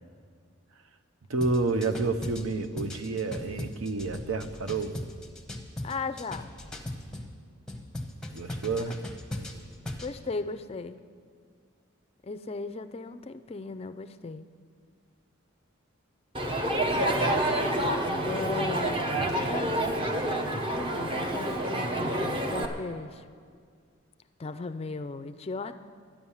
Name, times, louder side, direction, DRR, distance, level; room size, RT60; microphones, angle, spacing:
voice 1, 1.3-5.0 8.3-8.9 18.2-18.3 19.1-19.5, right 3 dB, 80° right, 10 dB, 0.7 m, -30 dB
sound 1, 1.4-7.3 7.7-10.1, left 1 dB, 5° left, 0.8 m, -38 dB
voice 2, 5.8-6.5 8.9-9.0 10.0-11.0 12.2-14.5 18.0-19.1 19.4-19.9 20.2-23.3 24.4-25.8, left 3 dB, 30° left, 10 dB, 0.4 m, -37 dB
Crowd, 16.3-22.7, right 1 dB, 25° right, 0.8 m, -28 dB
11.5 x 10.0 x 7.1 m, 2.1 s
head